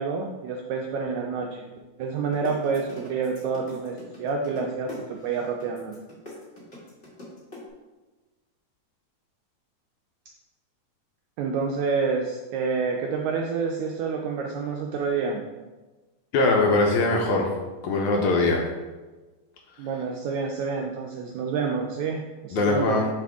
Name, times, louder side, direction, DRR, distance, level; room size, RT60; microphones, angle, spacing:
voice 1, 0.0-1.7 2.0-6.0 11.4-15.4 19.8-23.1, right 5 dB, 85° right, 1 dB, 1.6 m, -28 dB
sound 1, 2.3-7.6, left 2 dB, 40° left, 0.9 m, -42 dB
voice 2, 16.3-17.5 17.8-18.6 22.5-23.1, left 3 dB, 75° left, 0 dB, 1.9 m, -21 dB
6.4 x 5.1 x 3.5 m, 1.2 s
omnidirectional pair, 3.8 m